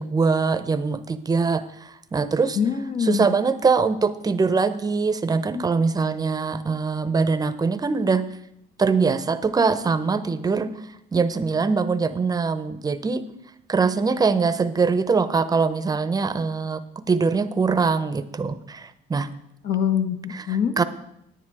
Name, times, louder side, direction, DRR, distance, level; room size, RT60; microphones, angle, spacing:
voice 1, 0.0-2.6 3.0-8.2 8.8-10.7 11.1-13.2 13.7-19.3 20.3-20.8, right 4 dB, 20° right, 12 dB, 0.7 m, -23 dB
voice 2, 2.6-3.3 19.6-20.7, left 8 dB, 60° left, 6 dB, 1.1 m, -24 dB
9.9 x 9.9 x 4.8 m, 0.78 s
cardioid pair, 110°, 17 cm